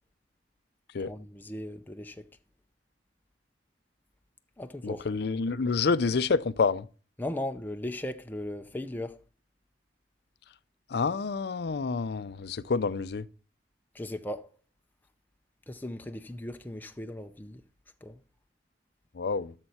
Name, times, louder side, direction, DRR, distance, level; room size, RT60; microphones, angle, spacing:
voice 1, 1.0-2.2 4.6-5.0 7.2-9.2 13.9-14.5 15.7-17.6 18.0-18.2, left 1 dB, 10° left, 0.5 m, -37 dB
voice 2, 4.8-6.9 10.9-13.3 19.1-19.5, left 4 dB, 65° left, 0.5 m, -28 dB
12.5 x 6.7 x 4.2 m
head